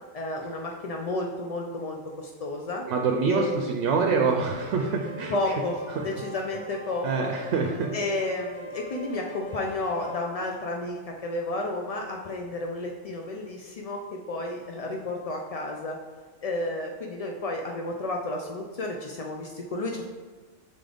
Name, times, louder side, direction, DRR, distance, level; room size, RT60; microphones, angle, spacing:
voice 1, 0.1-2.9 3.3-3.6 5.3-7.3 7.9-14.0 14.3-16.0 16.4-20.1, left 2 dB, 70° left, 1 dB, 0.3 m, -32 dB
voice 2, 2.9-5.5 6.0-6.1 7.0-7.9, right 4 dB, 80° right, 3 dB, 0.9 m, -26 dB
sound 1, 4.3-10.2, left 1 dB, 45° left, 1.4 m, -41 dB
7.7 x 3.8 x 3.4 m, 1.4 s
omnidirectional pair, 1.2 m